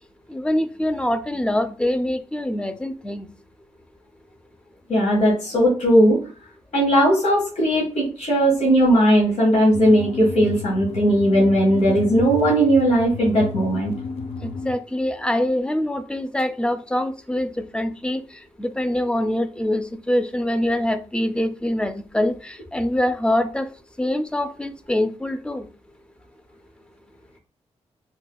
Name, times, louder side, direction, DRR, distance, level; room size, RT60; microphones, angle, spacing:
voice 1, 0.3-3.3 14.4-18.2 18.6-23.7 24.0-25.7, left 1 dB, 10° left, 0.4 m, -24 dB
voice 2, 4.9-6.2 6.7-13.9, equal, 75° left, 1.6 m, -18 dB
sound 1, 9.7-14.7, left 4 dB, 60° left, 0.5 m, -32 dB
3.9 x 2.8 x 2.3 m
cardioid pair, 60°, 12 cm